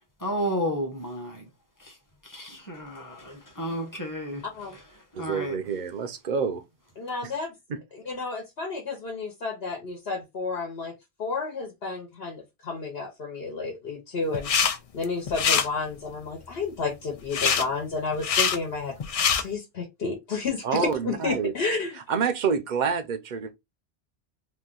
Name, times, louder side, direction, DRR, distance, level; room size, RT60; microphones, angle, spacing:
voice 1, 0.2-1.3 2.3-4.4 4.7-4.8 5.2-5.6, equal, 20° left, 0.9 m, -31 dB
voice 2, 5.1-6.6 7.2-7.3 7.7-7.8 20.6-21.5 22.1-23.5, right 6 dB, 55° right, 0.6 m, -27 dB
voice 3, 7.0-7.5 7.9-10.9 11.2-14.5 14.9-18.9 19.4-22.0, left 4 dB, 70° left, 1.2 m, -31 dB
sound 1, 14.3-14.8 15.0-15.7 17.3-17.6 18.1-18.6 19.0-19.4, left 7 dB, 55° left, 0.4 m, -23 dB
2.9 x 2.3 x 3.7 m
omnidirectional pair, 1.1 m